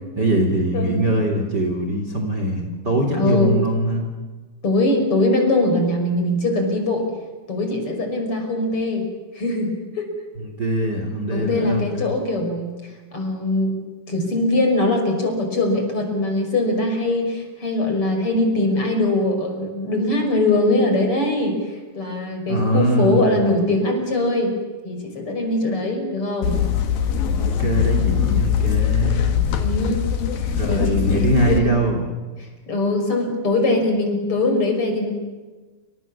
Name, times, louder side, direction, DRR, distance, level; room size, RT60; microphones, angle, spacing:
voice 1, 0.1-4.1 10.4-12.1 22.5-23.5 27.4-29.2 30.5-32.1, right 1 dB, 30° right, 3 dB, 3.3 m, -22 dB
voice 2, 3.1-3.6 4.6-7.1 7.5-9.1 9.3-10.1 11.3-12.7 13.1-13.7 14.1-24.5 24.8-26.5 29.6-30.0 30.3-31.7 32.4-35.1, left 2 dB, 35° left, 4 dB, 6.5 m, -22 dB
sound 1, 26.4-31.6, left 9 dB, 70° left, 3.6 m, -21 dB
29.0 x 26.5 x 7.3 m, 1.3 s
omnidirectional pair, 4.3 m